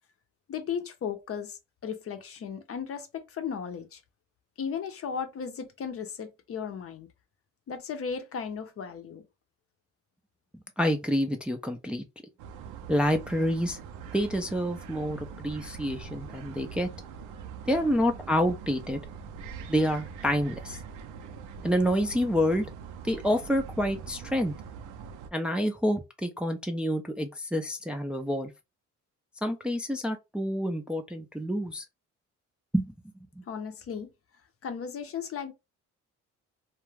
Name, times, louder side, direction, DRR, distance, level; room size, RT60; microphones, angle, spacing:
voice 1, 0.5-4.0 4.6-7.1 7.7-9.2 17.7-17.9 33.5-34.1 34.6-35.5, left 7 dB, 50° left, 0.6 m, -36 dB
voice 2, 10.8-12.0 12.9-13.8 14.1-16.9 17.7-19.0 19.7-20.8 21.6-22.7 23.0-24.5 25.3-28.5 29.4-31.8 32.7-32.9 33.4-33.5, equal, 5° right, 0.4 m, -28 dB
sound 1, 12.4-25.3, right 6 dB, 80° right, 0.5 m, -43 dB
2.3 x 2.2 x 3.2 m
cardioid pair, 90°, 30 cm